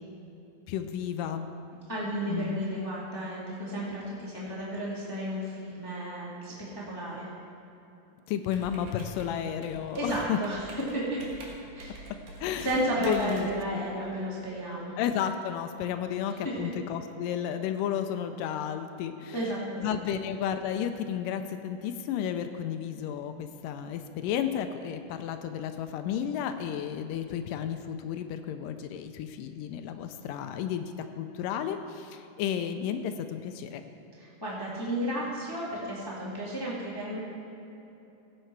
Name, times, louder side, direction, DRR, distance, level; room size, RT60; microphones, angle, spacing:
voice 1, 0.7-1.5 2.3-2.6 8.3-10.4 12.1-12.7 13.0-13.9 15.0-19.4 19.8-33.8, left 9 dB, 85° left, 8 dB, 2.2 m, -32 dB
voice 2, 1.9-7.3 9.9-11.2 11.7-12.0 12.6-14.9 16.3-16.5 19.3-20.2 34.2-37.2, right 1 dB, 10° left, -6 dB, 1.4 m, -33 dB
Computer keyboard, 8.5-14.4, right 2 dB, 65° right, 2.7 m, -47 dB
16.5 x 7.5 x 4.6 m, 2.9 s
omnidirectional pair, 3.8 m